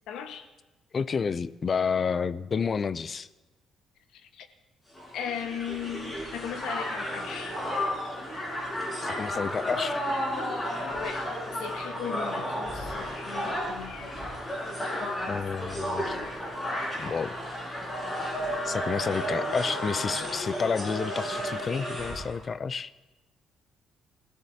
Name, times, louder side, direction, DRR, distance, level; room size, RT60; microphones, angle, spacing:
voice 1, 0.1-0.5 4.1-4.5 5.1-7.6 10.9-11.3 11.5-15.4 16.0-16.3 19.0-19.1, left 8 dB, 80° left, 7 dB, 1.3 m, -38 dB
voice 2, 0.9-3.3 9.0-10.0 15.3-16.2 17.0-17.3 18.6-22.9, left 5 dB, 30° left, 15 dB, 0.4 m, -30 dB
Crowd, 4.9-22.3, equal, 15° left, 5.4 m, -33 dB
26.5 x 15.5 x 2.8 m, 1.1 s
cardioid pair, 160°, 0 cm